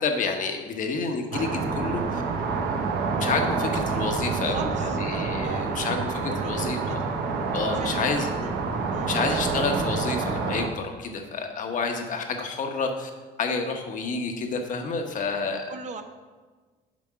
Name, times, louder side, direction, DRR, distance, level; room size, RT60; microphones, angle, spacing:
voice 1, 0.0-2.2 3.2-7.0 7.5-8.3 9.1-13.1 13.4-15.7, left 4 dB, 50° left, 4 dB, 1.0 m, -29 dB
sound 1, 1.3-10.7, right 4 dB, 75° right, 0.9 m, -28 dB
voice 2, 4.4-5.0 5.4-5.7 6.3-7.0 7.7-8.5 8.9-9.5 15.7-16.0, right 5 dB, 45° right, 7 dB, 0.7 m, -39 dB
6.1 x 5.2 x 5.8 m, 1.4 s
cardioid pair, 110°, 17 cm